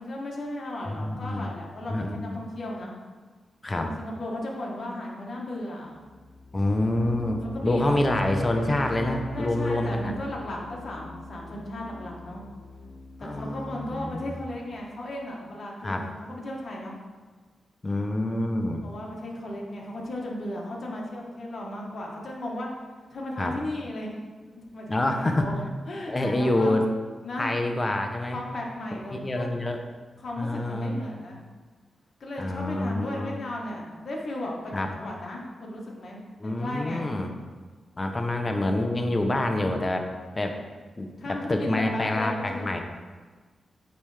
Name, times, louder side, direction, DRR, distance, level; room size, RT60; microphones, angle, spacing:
voice 1, 0.0-2.9 3.7-6.0 7.4-8.0 9.3-12.4 13.2-16.9 18.8-22.7 23.1-24.1 24.5-24.9 25.4-25.5 25.9-26.7 27.2-27.5 28.3-29.5 30.2-31.4 32.2-37.0 41.2-42.8, left 1 dB, 55° left, -2 dB, 1.4 m, -35 dB
voice 2, 0.9-1.5 1.9-2.4 3.6-3.9 6.5-10.1 13.2-14.4 15.8-16.1 17.8-18.9 23.4-23.6 24.9-25.5 26.1-26.9 27.4-28.4 29.1-29.8 30.4-31.2 32.4-33.4 34.7-34.9 36.4-37.3 38.0-40.1 40.4-40.6 41.0-42.8, left 1 dB, 30° left, 4 dB, 0.8 m, -27 dB
sound 1, 5.9-14.8, left 2 dB, 80° left, 0.9 m, -41 dB
9.0 x 3.4 x 3.3 m, 1.4 s
cardioid pair, 60°, 0 cm